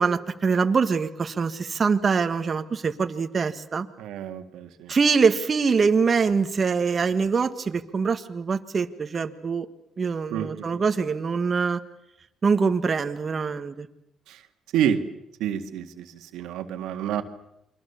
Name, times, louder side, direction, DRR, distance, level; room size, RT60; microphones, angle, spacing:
voice 1, 0.0-3.9 4.9-9.7 10.0-11.8 12.4-13.9, right 5 dB, 40° right, 7 dB, 1.6 m, -24 dB
voice 2, 4.0-4.9 10.3-10.8 14.3-14.4 14.7-15.0 15.4-17.2, right 9 dB, 90° right, 6 dB, 2.1 m, -28 dB
29.0 x 23.5 x 7.1 m, 0.82 s
cardioid pair, 90°, 0 cm